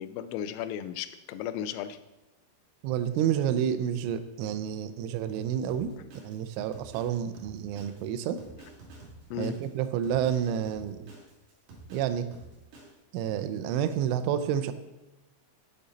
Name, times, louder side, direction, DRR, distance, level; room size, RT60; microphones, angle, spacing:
voice 1, 0.0-2.0 9.3-9.5, left 9 dB, 85° left, 12 dB, 3.2 m, -35 dB
voice 2, 2.8-5.9 6.2-8.4 9.4-11.1 11.9-12.3 13.1-14.7, right 9 dB, 85° right, 10 dB, 2.8 m, -29 dB
Drum kit, 5.7-13.0, right 2 dB, 60° right, 3.7 m, -50 dB
9.0 x 7.0 x 4.0 m, 0.99 s
omnidirectional pair, 5.9 m